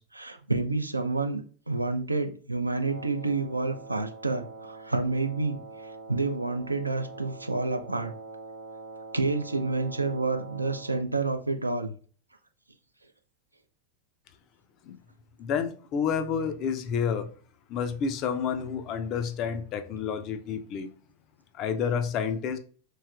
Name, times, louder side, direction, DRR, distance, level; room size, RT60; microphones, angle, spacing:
voice 1, 0.1-5.6 6.1-8.1 9.1-11.9, right 3 dB, 85° right, 0.3 m, -29 dB
Wind instrument woodwind instrument, 2.8-11.1, right 3 dB, 55° right, 1.0 m, -44 dB
voice 2, 15.4-17.4 17.7-20.9 21.5-22.6, left 7 dB, 35° left, 0.4 m, -29 dB
3.1 x 2.8 x 2.3 m
figure-of-eight pair, 90°, 0 cm